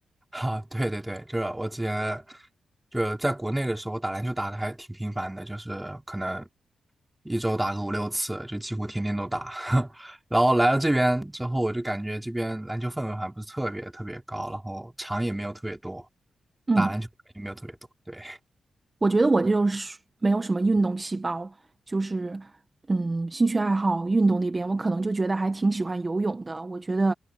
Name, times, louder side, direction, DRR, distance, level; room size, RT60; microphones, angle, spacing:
voice 1, 0.3-2.4 2.9-6.5 7.2-16.1 16.8-17.1 17.4-17.8 18.1-18.4, right 1 dB, 10° right, 3.5 m, -28 dB
voice 2, 19.0-21.5 21.9-22.5 22.9-27.1, right 3 dB, 30° right, 1.4 m, -25 dB
cardioid pair, 65°, 0 cm